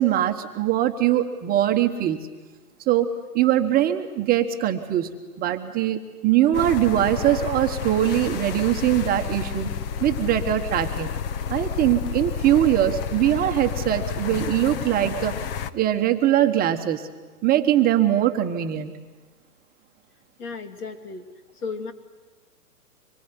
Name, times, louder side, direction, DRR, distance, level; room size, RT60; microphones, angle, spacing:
voice 1, 0.0-2.3 2.9-3.1 3.3-9.7 10.0-11.1 11.5-15.4 15.7-17.1 17.4-19.0, right 12 dB, 20° right, 5 dB, 1.3 m, -22 dB
sound 1, 6.5-15.7, left 7 dB, 35° left, 1.0 m, -30 dB
voice 2, 20.4-21.3 21.5-21.9, left 4 dB, 70° left, 7 dB, 3.1 m, -34 dB
25.0 x 22.5 x 9.7 m, 1.3 s
hypercardioid pair, 130°, 46 cm